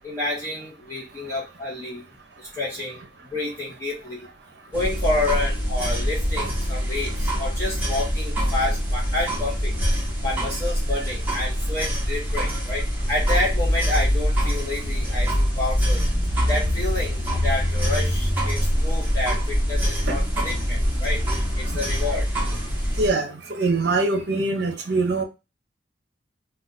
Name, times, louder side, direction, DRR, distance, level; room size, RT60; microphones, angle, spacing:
voice 1, 0.0-2.1 2.4-3.0 3.3-4.2 4.7-9.8 10.2-16.0 16.4-21.2 21.5-22.3, left 2 dB, 15° left, -7 dB, 0.8 m, -29 dB
sound 1, 4.7-23.1, equal, 10° right, 1.0 m, -24 dB
voice 2, 23.0-25.2, right 3 dB, 65° right, 5 dB, 0.7 m, -23 dB
2.4 x 2.3 x 3.9 m, 0.27 s
head